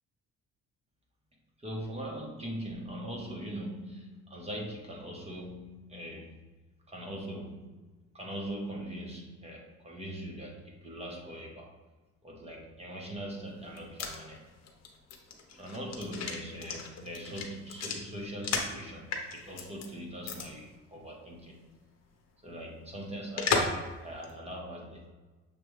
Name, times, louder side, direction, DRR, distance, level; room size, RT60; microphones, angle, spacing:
voice 1, 1.6-6.4 6.9-7.8 8.1-11.7 12.2-14.5 15.6-21.7 22.4-25.1, equal, 20° right, -2 dB, 1.0 m, -41 dB
sound 1, 13.6-18.8 19.1-19.9 20.2-20.5 20.7-20.8 23.4-23.9 24.2-24.3, left 4 dB, 60° left, 0.8 m, -34 dB
6.7 x 2.3 x 3.2 m, 1.2 s
cardioid pair, 90°, 30 cm